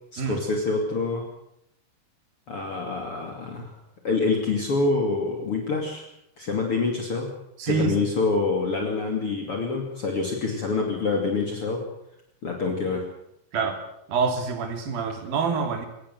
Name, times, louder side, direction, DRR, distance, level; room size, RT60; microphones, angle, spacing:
voice 1, 0.1-1.2 2.5-3.8 4.0-6.0 6.4-7.3 7.7-11.9 12.4-13.0, left 3 dB, 40° left, 2 dB, 3.2 m, -26 dB
voice 2, 7.6-8.2 13.5-13.8 14.1-15.9, right 5 dB, 80° right, 7 dB, 4.7 m, -26 dB
22.0 x 19.5 x 7.8 m, 0.79 s
omnidirectional pair, 4.1 m